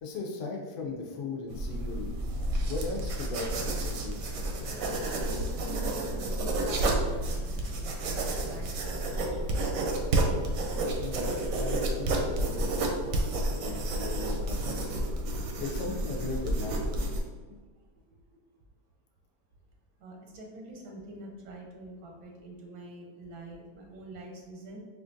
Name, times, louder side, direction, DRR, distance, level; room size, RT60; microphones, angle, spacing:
voice 1, 0.0-2.1 2.7-4.2 11.0-12.9 13.2-14.9 15.3-16.9, left 4 dB, 65° left, 1 dB, 0.7 m, -38 dB
sound 1, 1.5-17.2, right 1 dB, 70° right, 0.8 m, -30 dB
voice 2, 5.1-9.7 20.0-24.8, right 2 dB, 85° right, 1 dB, 1.2 m, -46 dB
4.3 x 2.4 x 2.6 m, 1.4 s
omnidirectional pair, 1.8 m